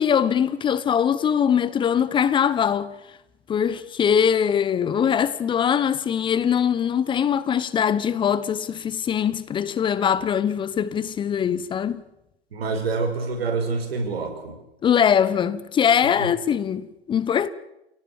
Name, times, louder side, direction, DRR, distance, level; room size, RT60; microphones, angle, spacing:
voice 1, 0.0-2.9 3.5-12.0 14.8-17.5, left 8 dB, 15° left, 0.9 m, -22 dB
voice 2, 12.5-14.6 16.2-16.3, right 4 dB, 65° right, 5.8 m, -26 dB
28.5 x 18.0 x 7.3 m
figure-of-eight pair, 115°, 32 cm